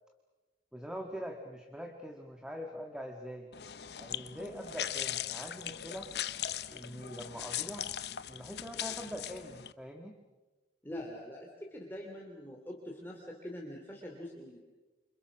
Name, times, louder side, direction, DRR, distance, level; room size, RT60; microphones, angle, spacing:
voice 1, 0.7-3.5 4.0-6.1 6.7-7.9 8.3-10.1, equal, 5° right, 3 dB, 1.7 m, -43 dB
sound 1, 3.5-9.7, left 10 dB, 65° left, 0.8 m, -39 dB
voice 2, 10.8-14.6, left 1 dB, 10° left, -1 dB, 2.9 m, -44 dB
29.0 x 26.0 x 6.1 m, 1.2 s
head